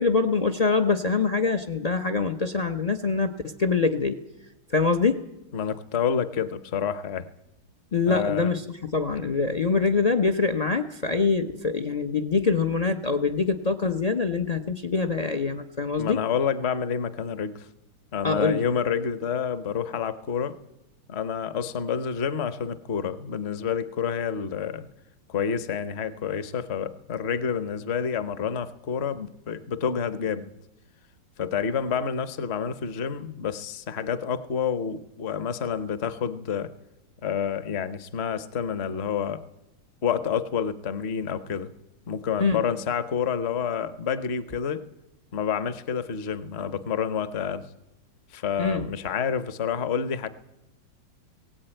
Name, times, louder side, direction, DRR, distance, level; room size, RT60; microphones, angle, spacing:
voice 1, 0.0-3.3 3.6-4.2 4.7-5.2 7.9-8.6 8.9-16.2 18.2-18.6 42.4-42.6 48.6-48.9, left 4 dB, 85° left, 8 dB, 0.3 m, -24 dB
voice 2, 5.5-7.3 8.1-8.5 16.0-17.7 18.1-20.6 21.1-24.9 25.3-30.5 31.4-36.7 37.2-39.4 40.0-41.7 42.1-44.9 45.3-47.7 48.3-50.3, left 7 dB, 45° left, 13 dB, 0.9 m, -28 dB
18.5 x 17.5 x 9.0 m, 0.92 s
omnidirectional pair, 2.0 m